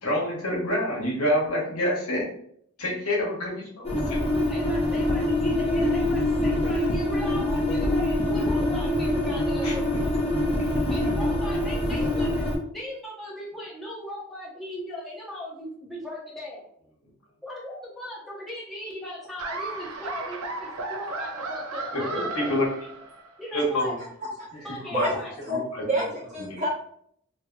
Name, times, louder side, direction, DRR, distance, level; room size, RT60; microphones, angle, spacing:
voice 1, 0.0-2.3 2.8-3.5 3.8-4.2 9.6-9.7 10.5-10.8 22.1-22.6 23.5-23.9 24.8-25.1 25.5-25.8 26.4-26.6, left 1 dB, 85° left, -4 dB, 1.1 m, -27 dB
sound 1, 3.8-12.6, left 1 dB, 25° left, 0.5 m, -25 dB
voice 2, 4.3-9.9 10.9-16.7 17.4-22.6 23.4-23.9 24.6-25.3, left 1 dB, ahead, -8 dB, 0.8 m, -38 dB
Laughter, 19.4-23.4, right 3 dB, 80° right, 0.5 m, -34 dB
voice 3, 24.4-25.1 25.4-25.6 25.9-26.7, right 1 dB, 35° right, -6 dB, 1.1 m, -29 dB
2.9 x 2.8 x 2.3 m, 0.66 s
head